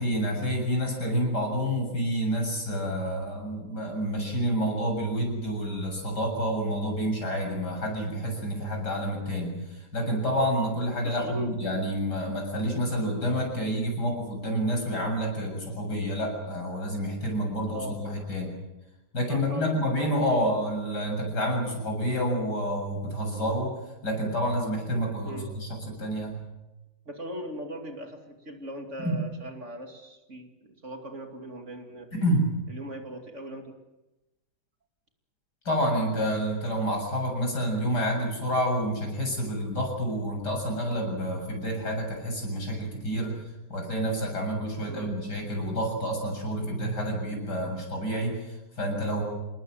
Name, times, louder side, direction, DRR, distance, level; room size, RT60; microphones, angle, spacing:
voice 1, 0.0-18.5 19.1-23.8 24.0-26.4 29.0-29.2 32.1-32.5 35.6-43.4 43.7-49.2, equal, 80° left, 2 dB, 8.0 m, -29 dB
voice 2, 11.0-11.5 17.6-18.0 19.3-19.8 20.1-20.5 25.2-25.5 27.1-32.1 32.7-33.8 44.9-45.1, equal, 45° right, 4 dB, 3.0 m, -39 dB
28.0 x 20.0 x 7.8 m, 0.98 s
omnidirectional pair, 1.8 m